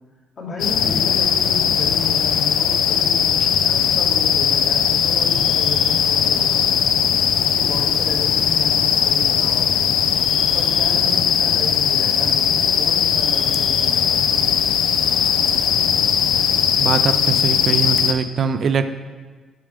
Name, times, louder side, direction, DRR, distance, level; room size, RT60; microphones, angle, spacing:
voice 1, 0.4-6.7 7.4-9.9 10.5-14.3, left 3 dB, 60° left, -3 dB, 1.9 m, -32 dB
sound 1, 0.6-18.1, left 8 dB, 85° left, 0.4 m, -19 dB
voice 2, 16.8-18.8, right 6 dB, 55° right, 10 dB, 0.4 m, -22 dB
8.0 x 5.0 x 3.5 m, 1.4 s
cardioid pair, 90°, 0 cm